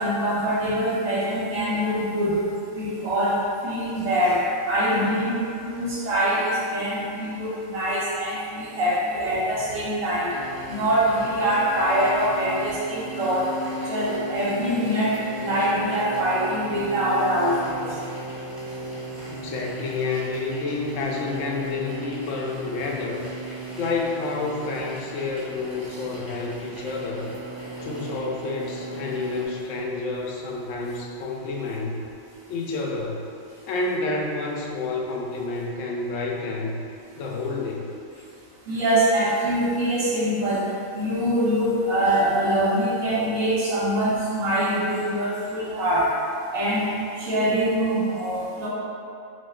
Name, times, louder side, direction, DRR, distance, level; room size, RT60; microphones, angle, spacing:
voice 1, 0.0-2.4 2.7-5.4 5.6-10.3 10.7-13.5 13.9-17.8 38.7-40.6 40.9-46.1 46.5-46.9 47.2-48.7, equal, 80° right, -9 dB, 1.3 m, -24 dB
sound 1, 10.3-29.5, right 1 dB, 20° right, 0.9 m, -36 dB
voice 2, 19.3-23.3 23.7-27.3 27.8-32.0 32.5-33.3 33.7-36.8 37.2-38.2, left 3 dB, 70° left, -1 dB, 0.9 m, -29 dB
6.1 x 2.3 x 2.3 m, 2.5 s
omnidirectional pair, 1.4 m